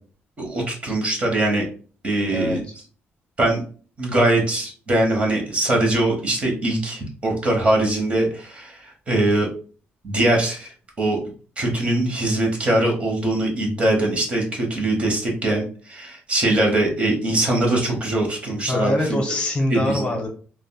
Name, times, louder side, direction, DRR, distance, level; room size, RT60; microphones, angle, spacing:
voice 1, 0.4-1.6 2.0-2.6 3.4-3.6 4.0-8.8 9.1-9.5 10.0-10.7 11.0-11.2 11.6-19.2 19.7-20.1, right 1 dB, 30° right, 0 dB, 1.0 m, -22 dB
voice 2, 2.3-2.6 18.7-20.3, left 1 dB, 25° left, 1 dB, 0.9 m, -23 dB
3.5 x 2.2 x 2.2 m, 0.40 s
cardioid pair, 145°, 4 cm